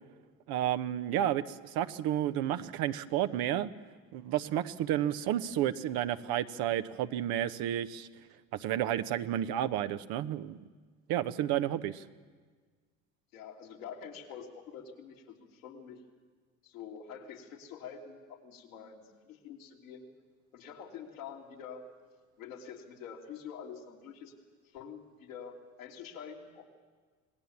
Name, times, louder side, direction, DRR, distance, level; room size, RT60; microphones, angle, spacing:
voice 1, 0.5-3.7 4.1-8.1 8.6-10.6 11.1-12.0, right 11 dB, 65° right, 10 dB, 1.1 m, -31 dB
voice 2, 13.3-16.0 16.6-20.1 20.5-21.9 22.4-24.3 24.7-26.7, left 7 dB, 85° left, -2 dB, 3.3 m, -46 dB
26.0 x 19.0 x 7.3 m, 1.5 s
hypercardioid pair, 60°, 40 cm